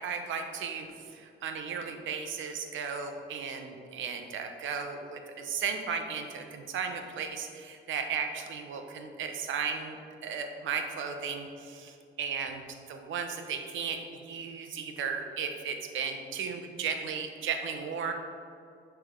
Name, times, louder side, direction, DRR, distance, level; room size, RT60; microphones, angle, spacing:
voice 1, 0.0-10.0 10.2-18.1, right 6 dB, 75° right, 5 dB, 0.8 m, -35 dB
10.0 x 3.5 x 3.7 m, 2.5 s
cardioid pair, 90°, 20 cm